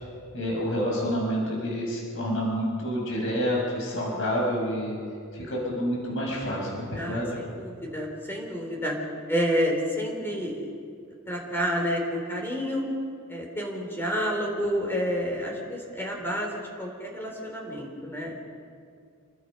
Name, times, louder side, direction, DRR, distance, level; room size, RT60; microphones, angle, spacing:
voice 1, 0.3-5.0 5.3-7.4, equal, 60° left, -2 dB, 6.7 m, -28 dB
voice 2, 7.0-9.0 9.3-10.7 11.3-12.9 13.3-18.4, equal, 10° left, 0 dB, 3.9 m, -29 dB
28.5 x 23.0 x 5.6 m, 2.3 s
head